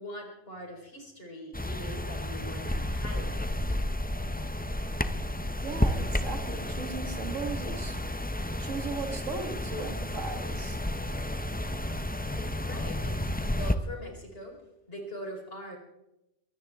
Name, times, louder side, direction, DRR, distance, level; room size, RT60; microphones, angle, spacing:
voice 1, 0.0-3.5 12.6-13.2 13.6-14.6 14.9-15.8, equal, 50° left, 0 dB, 4.8 m, -42 dB
sound 1, 1.5-13.7, left 1 dB, 10° left, 0.6 m, -31 dB
voice 2, 5.6-8.0 8.6-10.8, right 4 dB, 90° right, 6 dB, 2.1 m, -37 dB
23.0 x 17.0 x 3.6 m, 0.89 s
omnidirectional pair, 1.3 m